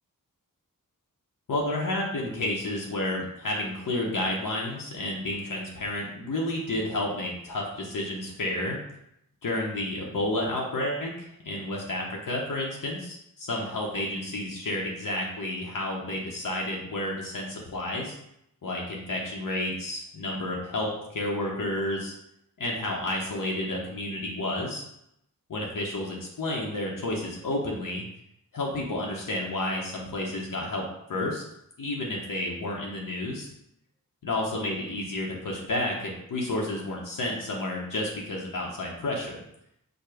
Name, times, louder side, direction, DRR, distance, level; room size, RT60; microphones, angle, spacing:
voice 1, 1.5-8.8 9.4-18.2 18.6-22.1 22.6-24.8 25.5-28.0 28.5-31.4 31.8-33.5 34.2-39.4, left 1 dB, 70° left, -2 dB, 1.0 m, -31 dB
4.8 x 2.3 x 4.8 m, 0.77 s
wide cardioid pair, 100°, 34 cm